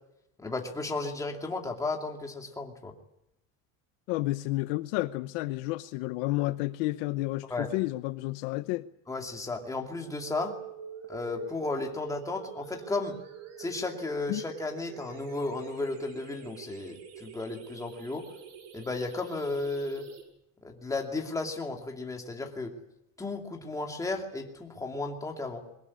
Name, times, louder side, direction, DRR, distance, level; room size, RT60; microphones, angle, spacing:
voice 1, 0.4-2.9 7.5-7.7 9.1-10.6 11.1-13.2 13.6-18.3 18.7-20.1 20.6-22.7 23.2-25.6, left 3 dB, 10° left, 2.6 m, -34 dB
voice 2, 4.1-8.9 14.3-14.4, left 19 dB, 65° left, 0.9 m, -31 dB
sound 1, 10.2-20.2, right 8 dB, 70° right, 6.5 m, -46 dB
22.5 x 19.5 x 9.7 m
cardioid pair, 175°, 42 cm